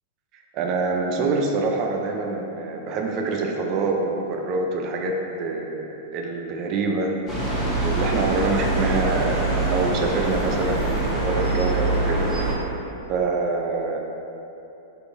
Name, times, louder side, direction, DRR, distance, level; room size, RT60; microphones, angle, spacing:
voice 1, 0.5-7.1 7.6-12.3 13.1-14.0, right 3 dB, 40° right, 1 dB, 0.4 m, -25 dB
sound 1, 7.3-12.5, right 2 dB, 30° left, 1.1 m, -24 dB
3.4 x 2.6 x 3.2 m, 3.0 s
hypercardioid pair, 125°, 0 cm